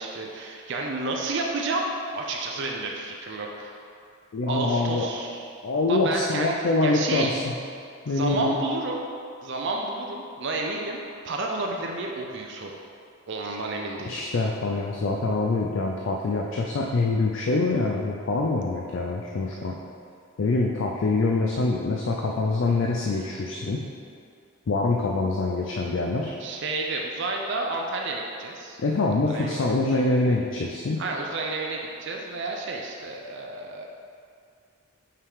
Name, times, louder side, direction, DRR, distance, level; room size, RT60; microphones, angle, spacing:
voice 1, 0.0-1.8 2.1-3.8 4.5-5.4 5.9-6.5 6.8-7.3 8.1-9.0 9.4-11.0 11.2-12.8 13.3-14.1 19.6-19.7 26.4-28.8 29.3-29.7 31.0-33.9, right 3 dB, 55° right, 0 dB, 0.5 m, -30 dB
voice 2, 4.3-5.2 5.6-7.5 8.1-8.6 14.0-19.7 20.4-23.8 24.7-26.4 28.8-31.0, left 3 dB, 60° left, -1 dB, 0.4 m, -25 dB
5.7 x 4.8 x 3.5 m, 2.4 s
head